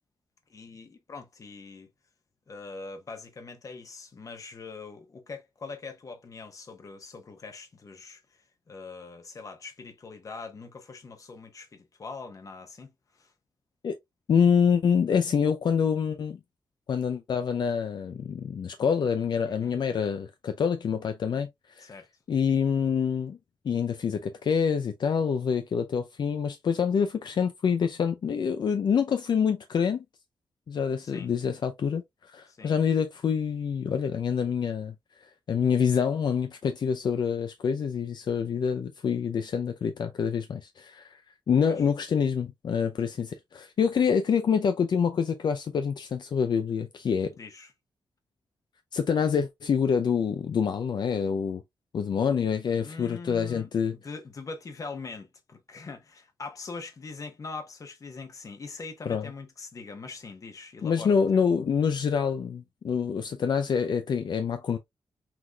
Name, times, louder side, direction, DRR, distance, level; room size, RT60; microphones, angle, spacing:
voice 1, 0.5-1.9 2.5-8.4 8.7-13.3 19.4-19.8 21.8-22.1 31.0-31.3 32.5-32.7 41.7-41.9 47.4-47.7 52.7-53.7 54.0-61.5, left 4 dB, 40° left, 1.1 m, -42 dB
voice 2, 14.3-16.4 16.9-21.9 22.3-23.4 23.6-30.0 30.7-32.0 32.3-34.9 35.5-41.2 41.5-47.3 48.9-51.6 51.9-54.0 59.1-59.3 60.8-64.8, left 6 dB, 60° left, 0.5 m, -26 dB
6.0 x 3.1 x 2.3 m
wide cardioid pair, 125°, 8 cm